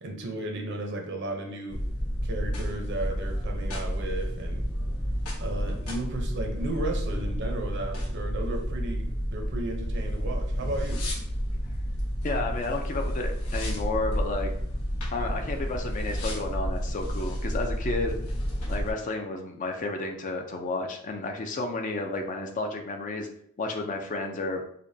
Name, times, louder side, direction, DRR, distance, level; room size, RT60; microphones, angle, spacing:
voice 1, 0.0-1.8 2.2-4.6 5.4-11.0, right 2 dB, 55° right, 2 dB, 0.7 m, -34 dB
sound 1, 1.7-18.9, equal, 85° left, 1.1 m, -30 dB
voice 2, 12.2-14.5 15.1-18.1 18.7-23.3 23.6-24.6, left 2 dB, 35° left, 4 dB, 0.4 m, -31 dB
4.9 x 2.2 x 2.7 m, 0.66 s
head